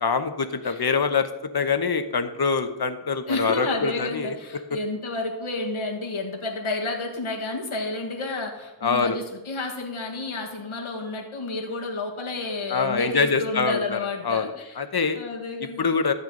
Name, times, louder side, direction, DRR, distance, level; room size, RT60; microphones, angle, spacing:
voice 1, 0.0-4.3 8.8-9.2 12.7-15.2 15.8-16.1, left 5 dB, 50° left, 8 dB, 1.1 m, -25 dB
voice 2, 3.3-14.8 15.2-15.9, left 3 dB, 90° left, 0 dB, 1.9 m, -30 dB
14.0 x 8.2 x 4.0 m, 1.0 s
wide cardioid pair, 55°, 47 cm